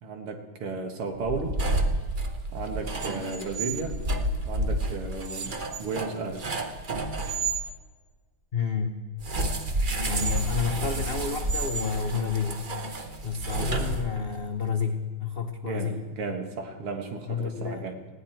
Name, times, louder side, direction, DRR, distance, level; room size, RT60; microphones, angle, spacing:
voice 1, 0.0-1.6 2.5-4.0 4.5-6.5 15.6-18.0, right 4 dB, 85° right, 5 dB, 2.5 m, -34 dB
sound 1, 1.2-7.6 9.2-14.4, right 2 dB, 45° right, 0.6 m, -30 dB
voice 2, 8.5-9.0 10.0-12.7 13.2-16.0 17.3-17.8, left 5 dB, 70° left, 4 dB, 0.5 m, -30 dB
19.5 x 16.0 x 4.4 m, 1.5 s
omnidirectional pair, 2.4 m